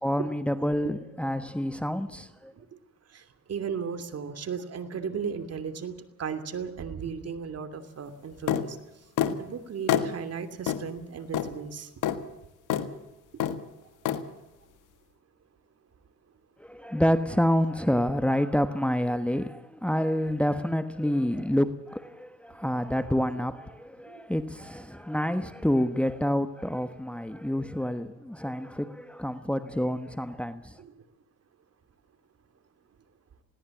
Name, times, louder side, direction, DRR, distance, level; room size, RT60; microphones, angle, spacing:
voice 1, 0.0-2.5 16.6-30.8, equal, 5° left, 1.3 m, -28 dB
voice 2, 3.5-5.9 6.2-8.8 9.4-11.9 30.8-30.9, right 6 dB, 55° right, 2.9 m, -35 dB
sound 1, 8.5-8.7 9.2-9.4 9.9-10.1 10.7-10.8 11.3-11.5 12.0-12.2 12.7-12.9 13.4-13.6 14.0-14.2, left 10 dB, 85° left, 1.7 m, -26 dB
20.5 x 18.0 x 7.3 m
cardioid pair, 90°, 30 cm